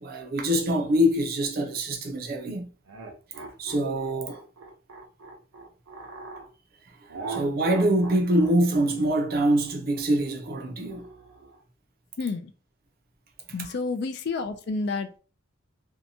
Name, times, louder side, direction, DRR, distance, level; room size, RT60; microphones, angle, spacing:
voice 1, 0.0-2.7 3.6-4.4 7.3-11.0, right 1 dB, 45° right, 0.5 m, -24 dB
sound 1, 2.8-6.5 7.1-11.6, right 3 dB, 90° right, 0.7 m, -40 dB
voice 2, 12.2-12.5 13.5-15.2, left 4 dB, 55° left, 0.3 m, -30 dB
2.7 x 2.2 x 2.7 m
head